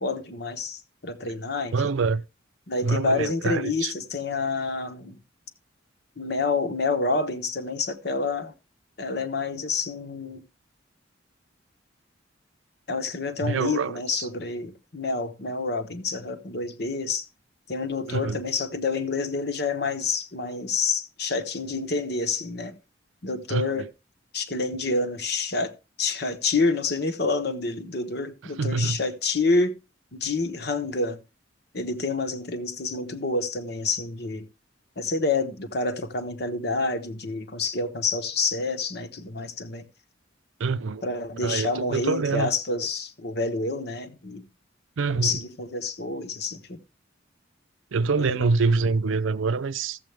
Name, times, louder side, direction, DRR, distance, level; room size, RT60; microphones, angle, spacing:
voice 1, 0.0-1.9 2.7-5.2 6.2-8.5 9.0-10.4 12.9-17.2 17.7-22.8 23.2-23.9 24.3-25.7 26.0-29.8 30.1-31.2 31.7-34.4 35.0-39.8 41.0-44.4 45.1-46.8 48.1-48.5, left 3 dB, 55° left, 1.2 m, -28 dB
voice 2, 1.7-2.2 2.8-3.9 13.4-14.3 18.1-18.4 23.5-23.9 28.6-29.0 40.6-41.0 41.4-42.5 45.0-45.4 47.9-50.0, right 4 dB, 85° right, 0.5 m, -25 dB
14.0 x 7.6 x 3.4 m
head